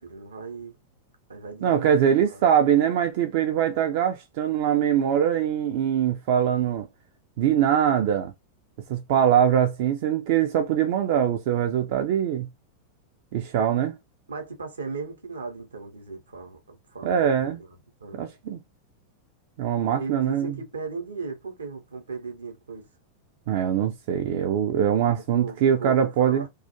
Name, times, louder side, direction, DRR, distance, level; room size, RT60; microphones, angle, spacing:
voice 1, 0.0-0.8 1.3-2.0 2.3-2.5 14.3-17.7 18.0-18.3 19.9-22.9 25.1-26.5, right 4 dB, 75° right, 0.7 m, -37 dB
voice 2, 1.6-6.9 7.4-8.3 8.9-12.5 13.3-13.9 17.0-17.6 18.1-18.6 19.6-20.6 23.5-26.5, right 9 dB, 50° right, 0.3 m, -22 dB
2.3 x 2.2 x 2.8 m
figure-of-eight pair, 90°, 0 cm